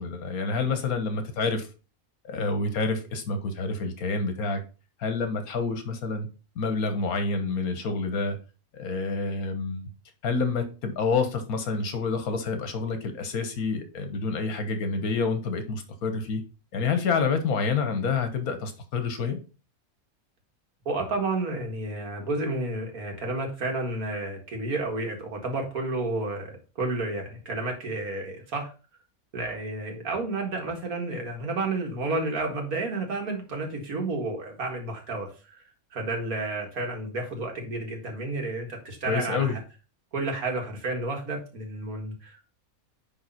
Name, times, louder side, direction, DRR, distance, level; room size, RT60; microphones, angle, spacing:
voice 1, 0.0-1.7 2.2-4.6 5.0-6.3 6.5-8.4 8.7-9.9 10.2-16.4 16.7-19.4 39.1-39.5, left 4 dB, 80° left, 8 dB, 1.6 m, -28 dB
voice 2, 20.9-28.7 29.3-35.3 35.9-39.6 40.1-42.5, right 2 dB, 80° right, 2 dB, 2.2 m, -31 dB
9.6 x 3.6 x 4.2 m, 0.34 s
omnidirectional pair, 1.5 m